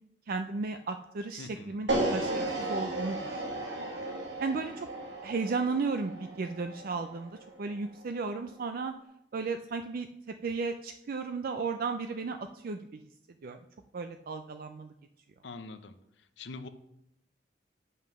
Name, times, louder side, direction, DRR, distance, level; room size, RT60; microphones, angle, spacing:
voice 1, 0.3-3.8 4.4-4.9 5.2-8.9 9.3-10.1 10.4-13.0 13.4-13.6 13.9-14.9, right 4 dB, 55° right, 8 dB, 0.4 m, -34 dB
voice 2, 1.4-1.8 15.4-16.0 16.4-16.7, left 3 dB, 75° left, 10 dB, 0.7 m, -43 dB
sound 1, 1.9-8.0, right 2 dB, 85° right, 2.1 m, -35 dB
7.7 x 5.5 x 6.1 m, 0.80 s
head